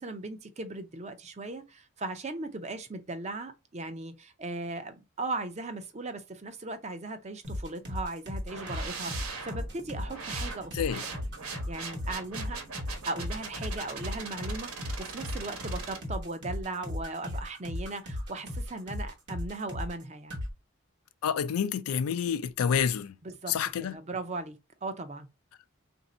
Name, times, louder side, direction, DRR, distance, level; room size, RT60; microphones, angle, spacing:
voice 1, 0.0-11.1 11.7-12.6 13.0-14.7 15.0-20.4 23.2-25.3, right 2 dB, 30° right, 0.5 m, -38 dB
sound 1, 7.4-20.0 20.3-20.5, left 1 dB, 50° right, 1.1 m, -36 dB
sound 2, 8.5-16.0, right 4 dB, 85° right, 1.2 m, -41 dB
voice 2, 21.2-23.2 23.5-24.0, left 7 dB, 85° left, 0.4 m, -28 dB
3.4 x 2.6 x 4.1 m
head